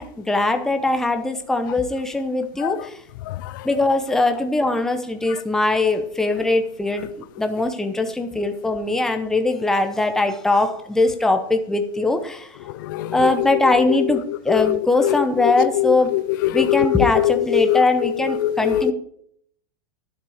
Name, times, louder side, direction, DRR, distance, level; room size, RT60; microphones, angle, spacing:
voice 1, 0.0-2.9 3.6-12.5 13.1-16.1 16.5-18.9, left 2 dB, 5° left, 6 dB, 0.9 m, -21 dB
voice 2, 3.3-3.7 12.8-18.9, left 14 dB, 55° left, 14 dB, 0.5 m, -23 dB
11.5 x 7.4 x 5.0 m, 0.68 s
supercardioid pair, 160°, 13 cm